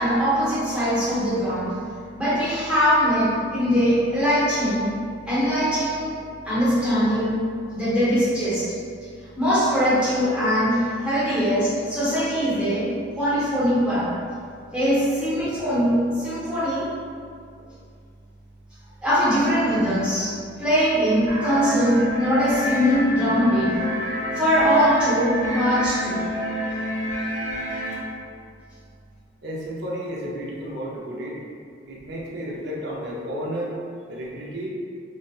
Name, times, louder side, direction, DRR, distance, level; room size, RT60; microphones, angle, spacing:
voice 1, 0.0-1.7 2.2-4.9 5.2-6.2 6.4-7.4 7.7-8.8 9.4-14.1 14.7-16.9 19.0-23.7 24.3-26.2, equal, 5° right, -13 dB, 0.8 m, -21 dB
sound 1, 21.3-27.9, equal, 85° right, 1.0 m, -28 dB
voice 2, 29.4-31.4 31.9-33.7 34.1-34.7, equal, 60° right, -4 dB, 0.4 m, -32 dB
2.6 x 2.0 x 2.3 m, 2.3 s
head